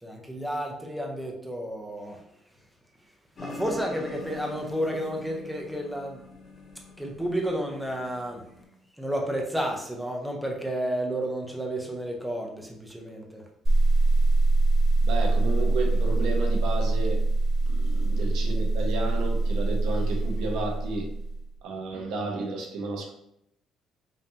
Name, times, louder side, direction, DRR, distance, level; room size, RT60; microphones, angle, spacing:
voice 1, 0.0-2.2 3.4-6.2 7.0-8.5 9.0-13.5 21.7-21.8, equal, 5° right, 1 dB, 0.6 m, -31 dB
sound 1, 3.4-8.6, left 1 dB, 30° left, 0.9 m, -43 dB
sound 2, 13.6-21.5, right 2 dB, 20° right, 1.2 m, -23 dB
voice 2, 15.0-17.2 17.6-21.1 21.6-23.1, right 3 dB, 80° right, 2 dB, 0.9 m, -32 dB
5.2 x 2.7 x 2.8 m, 0.75 s
cardioid pair, 180°, 0 cm